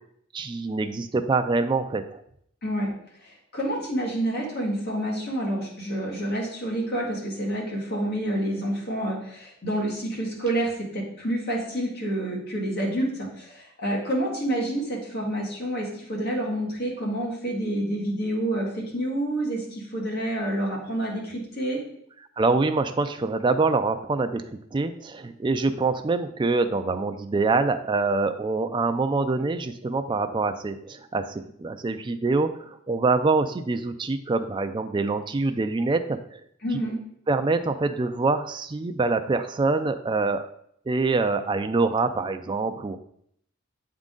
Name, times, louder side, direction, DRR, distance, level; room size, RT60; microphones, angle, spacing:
voice 1, 0.3-2.2 22.4-36.4 37.3-40.5 40.9-43.0, right 3 dB, 25° right, 7 dB, 0.3 m, -25 dB
voice 2, 3.2-21.8 36.6-37.0, right 1 dB, 50° left, -3 dB, 1.9 m, -28 dB
8.1 x 3.7 x 3.7 m, 0.69 s
head